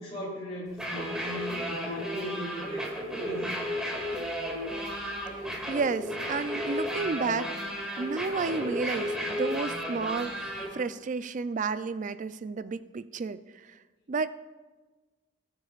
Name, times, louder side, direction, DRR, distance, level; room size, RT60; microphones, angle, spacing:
voice 1, 0.0-3.0 3.2-3.5, equal, 30° left, -9 dB, 3.3 m, -38 dB
sound 1, 0.7-10.7, equal, 5° right, 2.3 m, -33 dB
voice 2, 5.7-7.5 8.0-13.4 14.1-14.3, right 4 dB, 40° right, 13 dB, 0.4 m, -31 dB
20.5 x 9.6 x 2.4 m, 1.3 s
head